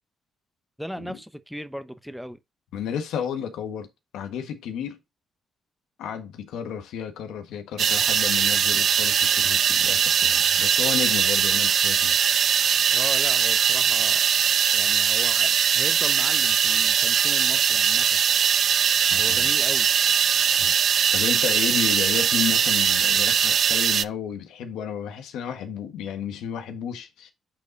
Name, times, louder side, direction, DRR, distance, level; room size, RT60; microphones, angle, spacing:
voice 1, 0.8-2.4 12.9-14.3 14.7-18.2 19.2-19.9, equal, ahead, 0.8 m, -37 dB
voice 2, 2.7-3.9 4.1-5.0 6.0-12.2 19.1-19.5 20.5-27.3, left 8 dB, 85° left, 1.5 m, -32 dB
sound 1, 7.8-24.0, right 8 dB, 55° right, 0.4 m, -21 dB
8.3 x 4.2 x 4.0 m
cardioid pair, 90°, 0 cm